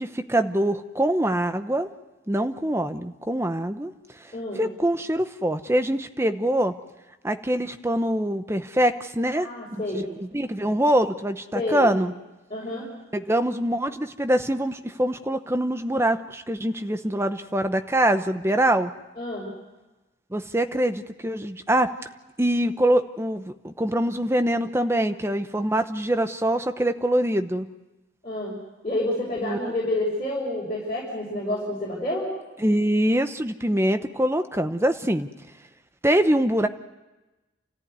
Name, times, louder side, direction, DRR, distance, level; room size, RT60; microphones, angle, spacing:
voice 1, 0.0-1.9 2.3-3.9 4.5-6.7 7.2-12.1 13.1-18.9 20.3-21.9 22.4-27.7 29.4-29.7 32.6-35.3 36.0-36.7, right 1 dB, 15° right, 8 dB, 0.8 m, -24 dB
voice 2, 4.3-4.6 9.4-10.1 11.5-11.9 12.5-12.9 19.2-19.5 28.2-28.6 28.8-32.3, left 1 dB, 30° left, -5 dB, 5.5 m, -29 dB
29.0 x 14.5 x 9.6 m, 1.1 s
head